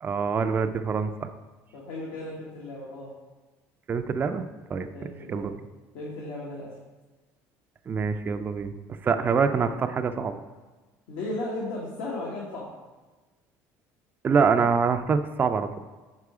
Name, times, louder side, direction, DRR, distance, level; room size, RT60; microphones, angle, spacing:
voice 1, 0.0-1.3 3.9-4.9 5.3-5.5 7.9-8.7 9.0-10.3 14.2-15.8, right 5 dB, 30° right, 8 dB, 0.3 m, -25 dB
voice 2, 1.7-3.1 4.9-5.5 5.9-6.7 11.1-12.7, left 2 dB, 85° left, -4 dB, 1.2 m, -35 dB
4.8 x 4.7 x 4.7 m, 1.2 s
supercardioid pair, 105°, 7 cm